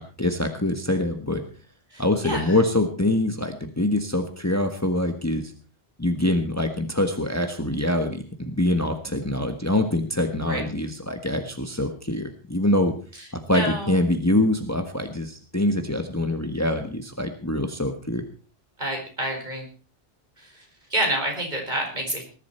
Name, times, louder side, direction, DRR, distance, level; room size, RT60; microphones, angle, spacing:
voice 1, 0.0-1.4 2.0-5.5 6.0-12.9 13.3-18.2, left 1 dB, 15° left, 6 dB, 1.5 m, -24 dB
voice 2, 1.9-2.6 10.4-10.6 13.5-14.0 18.8-19.6 20.4-20.7 20.9-22.2, right 1 dB, 45° right, 1 dB, 5.3 m, -28 dB
20.0 x 11.5 x 4.4 m, 0.38 s
omnidirectional pair, 1.0 m